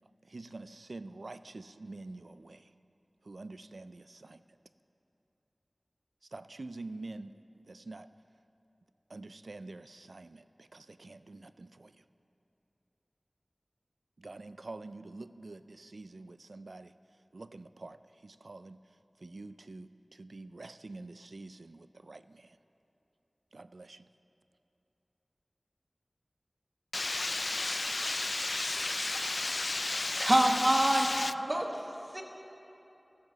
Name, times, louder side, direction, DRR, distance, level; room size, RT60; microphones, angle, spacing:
voice 1, 0.2-2.7 3.2-4.4 6.3-8.1 9.1-12.0 14.2-16.9 17.3-18.8 19.2-22.6 23.5-24.1, right 2 dB, 90° right, 13 dB, 0.3 m, -47 dB
voice 2, 26.9-31.3, left 2 dB, 70° left, 14 dB, 0.3 m, -33 dB
voice 3, 30.2-32.2, right 1 dB, 40° right, 1 dB, 1.4 m, -27 dB
14.5 x 14.0 x 4.0 m, 2.9 s
wide cardioid pair, 55°, 0 cm